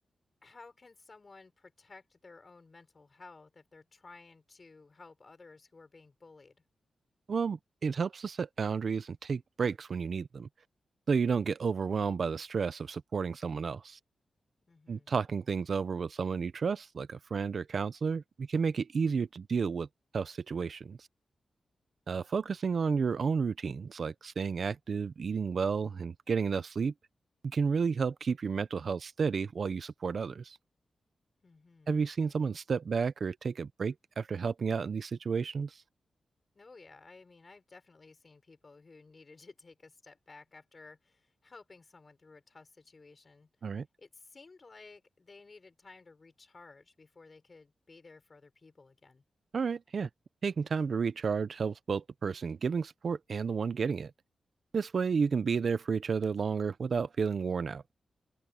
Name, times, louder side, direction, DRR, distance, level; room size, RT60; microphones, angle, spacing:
voice 1, 0.4-6.6 14.7-15.1 31.4-32.4 36.5-43.5 44.0-49.2, left 3 dB, 35° left, 6.4 m, -55 dB
voice 2, 7.3-10.5 11.1-14.0 14.9-19.9 20.1-21.1 22.1-26.9 27.4-30.6 31.9-35.8 43.6-43.8 49.5-50.1 50.4-54.1 54.7-57.8, right 5 dB, 55° right, 0.6 m, -31 dB
open air
wide cardioid pair, 125°, 0 cm